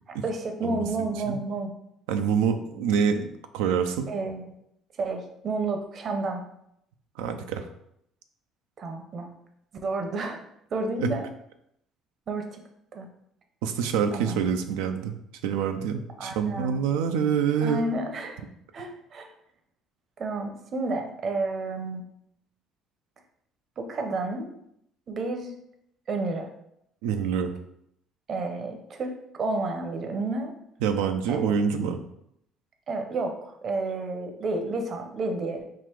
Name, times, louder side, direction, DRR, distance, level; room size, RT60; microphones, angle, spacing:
voice 1, 0.1-1.7 4.1-4.5 5.0-6.4 8.8-9.3 9.8-10.4 10.7-11.3 12.3-12.6 12.9-13.1 14.1-14.4 16.2-16.8 17.6-18.4 18.7-19.3 20.2-22.0 23.8-24.5 25.1-25.5 26.1-26.5 28.3-30.5 31.3-31.4 32.9-35.6, right 3 dB, 50° right, 4 dB, 0.8 m, -30 dB
voice 2, 0.6-1.4 2.1-3.3 3.5-4.1 7.2-7.7 11.0-11.1 13.6-15.2 15.4-17.9 27.0-27.5 30.8-32.0, right 7 dB, 85° right, 7 dB, 0.4 m, -26 dB
3.9 x 2.4 x 4.5 m, 0.75 s
supercardioid pair, 80°, 0 cm